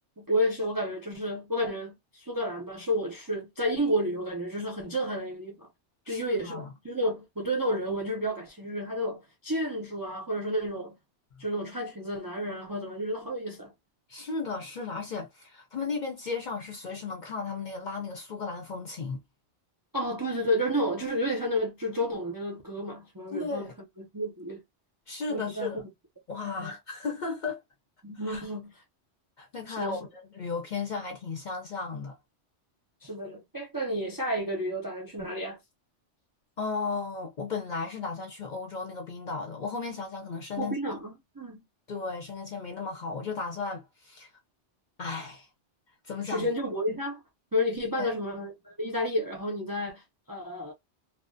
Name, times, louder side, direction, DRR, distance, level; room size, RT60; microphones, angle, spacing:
voice 1, 0.2-5.7 6.1-11.0 11.4-13.7 19.9-23.7 24.0-24.6 25.3-25.9 26.4-26.7 28.0-28.8 29.7-30.1 33.0-35.6 40.6-41.6 46.2-47.2 47.5-50.7, equal, 30° right, 0.3 m, -31 dB
voice 2, 6.1-6.7 11.3-11.4 14.1-19.2 23.3-23.7 25.1-25.8 26.3-27.6 28.3-28.4 29.4-32.2 36.6-40.8 41.9-44.3 45.0-45.5 46.1-46.5 48.0-48.1, left 4 dB, 50° left, 0.6 m, -35 dB
2.3 x 2.1 x 2.5 m
omnidirectional pair, 1.2 m